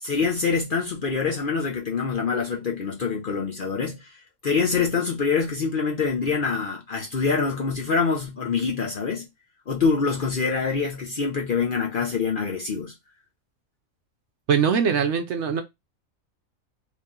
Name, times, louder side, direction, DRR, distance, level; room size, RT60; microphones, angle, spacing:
voice 1, 0.0-4.1 4.4-9.3 9.7-12.9, left 5 dB, 50° left, 0.7 m, -25 dB
voice 2, 14.5-15.6, right 7 dB, 65° right, 0.8 m, -22 dB
3.2 x 2.8 x 3.6 m
omnidirectional pair, 1.4 m